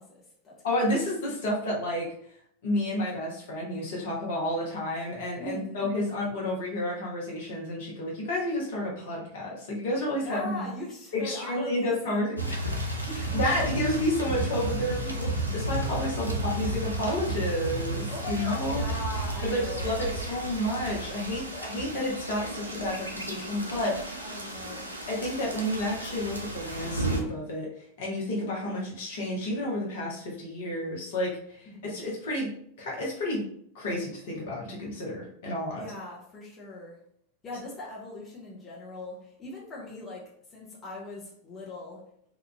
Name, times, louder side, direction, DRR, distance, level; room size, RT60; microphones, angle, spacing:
voice 1, 0.0-0.9 5.4-5.9 10.2-12.3 12.7-13.4 16.1-16.7 18.1-20.2 21.3-21.9 24.2-24.9 31.7-32.0 35.8-37.0 37.4-42.1, left 2 dB, 25° left, -4 dB, 0.7 m, -41 dB
voice 2, 0.6-2.1 2.6-10.6 11.1-12.7 13.3-18.8 19.4-24.2 25.1-27.7 28.0-32.5 32.8-33.4 33.7-35.9, left 1 dB, 55° left, -3 dB, 0.8 m, -30 dB
sound 1, 12.4-27.2, right 1 dB, 85° right, 0.4 m, -33 dB
2.9 x 2.3 x 2.2 m, 0.68 s
figure-of-eight pair, 90°, 0 cm